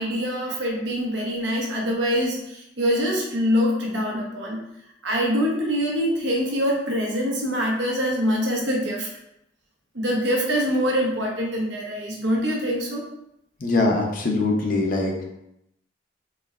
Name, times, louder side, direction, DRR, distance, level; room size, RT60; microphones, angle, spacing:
voice 1, 0.0-4.6 5.0-9.1 9.9-13.0, equal, 75° right, -2 dB, 1.0 m, -24 dB
voice 2, 13.6-15.2, left 2 dB, 50° left, 0 dB, 0.7 m, -22 dB
4.2 x 3.2 x 2.4 m, 0.80 s
head